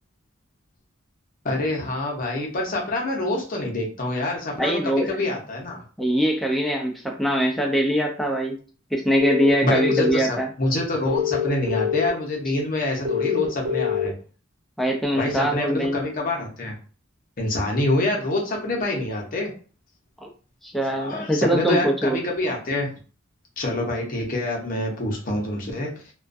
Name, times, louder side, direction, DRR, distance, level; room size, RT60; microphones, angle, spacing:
voice 1, 1.4-5.8 9.6-14.1 15.2-16.8 17.4-19.5 20.8-22.9 23.6-25.9, left 2 dB, 45° left, -1 dB, 0.7 m, -26 dB
voice 2, 4.6-5.1 6.0-8.6 8.9-10.5 14.8-16.1 20.2-20.3 20.6-22.2, equal, ahead, 0 dB, 0.4 m, -22 dB
sound 1, 9.2-10.1 11.1-12.1 13.0-14.1, left 7 dB, 55° right, 0.9 m, -24 dB
2.4 x 2.2 x 2.5 m, 0.38 s
head